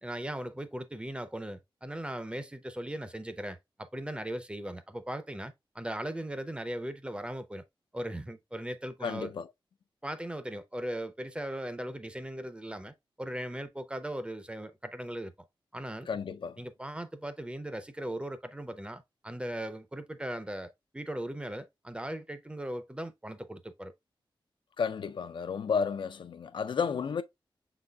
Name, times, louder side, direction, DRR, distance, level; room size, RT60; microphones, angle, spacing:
voice 1, 0.0-7.6 7.9-9.3 10.0-15.3 15.7-16.1 16.6-23.9, right 1 dB, 10° right, 0.5 m, -38 dB
voice 2, 9.0-9.5 16.1-16.6 24.8-27.2, left 6 dB, 65° left, 0.4 m, -32 dB
6.1 x 3.9 x 2.2 m
wide cardioid pair, 100°, 9 cm